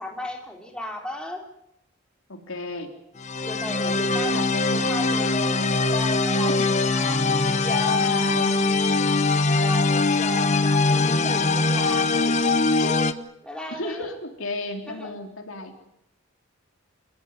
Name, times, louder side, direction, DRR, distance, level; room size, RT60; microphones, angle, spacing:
voice 1, 0.0-1.4 3.4-6.5 6.8-8.0 9.0-12.4 12.7-13.1 13.4-14.1 14.9-15.1, left 1 dB, 5° left, 1 dB, 4.0 m, -36 dB
voice 2, 2.3-2.9 4.0-4.8 6.6-6.8 7.9-8.5 13.7-15.7, left 2 dB, 80° left, 4 dB, 3.8 m, -34 dB
sound 1, 3.2-13.1, left 3 dB, 35° left, 1.1 m, -22 dB
29.0 x 14.5 x 9.7 m, 0.80 s
head